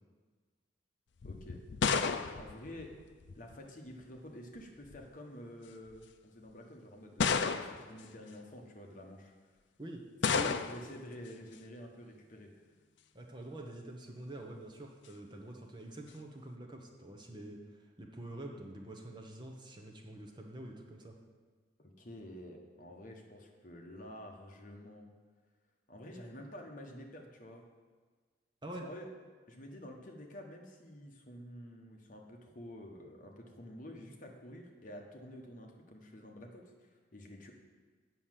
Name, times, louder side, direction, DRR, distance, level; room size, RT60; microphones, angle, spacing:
sound 1, 1.2-3.6 4.6-5.0 5.9-6.0 7.2-8.0 10.2-11.0, left 5 dB, 70° left, 0.5 m, -32 dB
voice 1, 1.2-1.6 2.3-2.9 3.3-9.3 10.2-12.5 21.8-25.1 25.9-27.6 28.8-29.1 29.5-37.5, equal, 45° left, 2 dB, 1.2 m, -49 dB
voice 2, 13.1-21.2 28.6-28.9, right 1 dB, 25° right, 2 dB, 1.0 m, -46 dB
8.4 x 6.2 x 7.5 m, 1.5 s
head